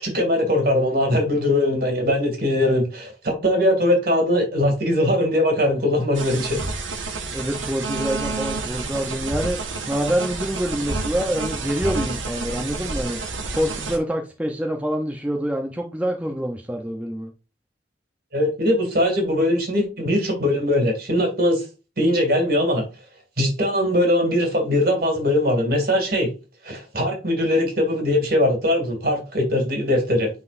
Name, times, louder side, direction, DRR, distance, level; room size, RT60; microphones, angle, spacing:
voice 1, 0.0-6.6 18.3-21.7 22.0-22.9 23.4-26.3 26.6-30.3, left 1 dB, 50° right, 2.5 m, -21 dB
sound 1, 6.1-14.0, right 3 dB, 85° right, 1.3 m, -29 dB
voice 2, 7.3-17.3, equal, 5° right, 0.6 m, -26 dB
9.6 x 3.9 x 2.6 m
head